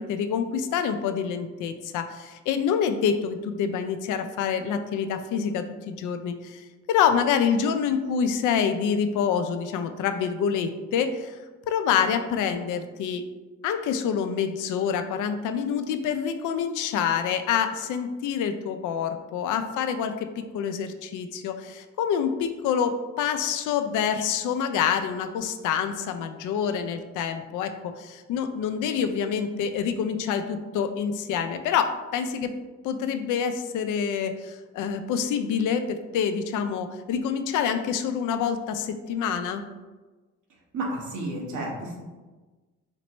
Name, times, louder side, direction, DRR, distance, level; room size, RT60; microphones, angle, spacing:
voice 1, 0.0-11.4 11.7-13.2 13.6-32.5 32.8-39.6, left 7 dB, 85° left, 8 dB, 0.5 m, -27 dB
voice 2, 40.7-42.0, right 1 dB, 75° right, -3 dB, 1.3 m, -31 dB
4.3 x 3.1 x 3.0 m, 1.2 s
cardioid pair, 90°, 30 cm